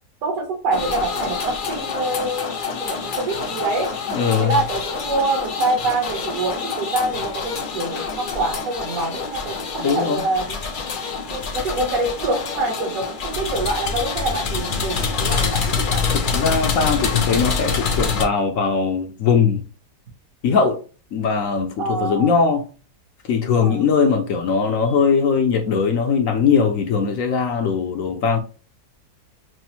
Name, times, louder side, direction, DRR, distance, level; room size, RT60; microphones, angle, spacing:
voice 1, 0.2-3.9 4.4-10.6 11.3-16.0 21.8-22.3 23.5-23.8, right 2 dB, 60° right, 1.4 m, -25 dB
sound 1, 0.7-18.2, left 5 dB, 90° left, 0.4 m, -26 dB
voice 2, 4.1-4.5 9.8-10.2 16.1-19.6 20.4-20.8 21.1-22.6 23.3-28.4, left 5 dB, 65° left, 0.9 m, -20 dB
6.0 x 2.0 x 2.8 m
omnidirectional pair, 1.7 m